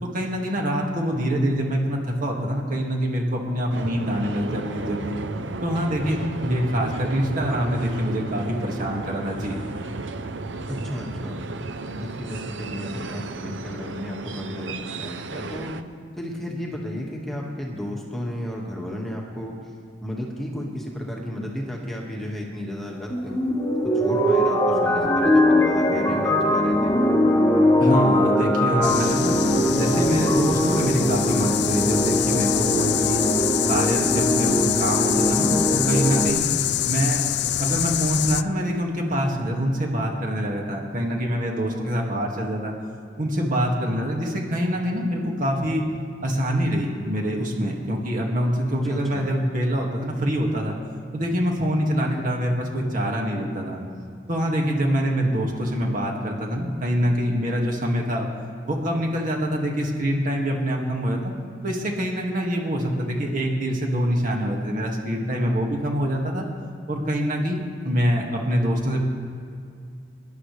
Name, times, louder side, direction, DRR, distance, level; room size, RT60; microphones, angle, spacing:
voice 1, 0.1-5.2 5.6-9.5 27.8-29.4 29.8-33.2 33.7-36.4 36.8-37.2 37.6-42.7 43.2-45.8 46.2-50.8 51.1-53.8 54.3-58.3 58.7-61.3 61.6-66.4 66.9-69.0, equal, 50° right, -1 dB, 2.0 m, -25 dB
sound 1, 3.7-15.8, right 3 dB, 75° right, 0.7 m, -33 dB
voice 2, 10.7-11.4 11.9-15.7 16.2-19.5 20.0-23.3 23.9-26.9 48.8-49.3, equal, ahead, -2 dB, 1.8 m, -33 dB
sound 2, 23.1-36.3, left 1 dB, 20° left, 1.6 m, -21 dB
sound 3, 28.8-38.4, left 13 dB, 65° left, 0.4 m, -26 dB
25.5 x 11.5 x 3.3 m, 2.3 s
head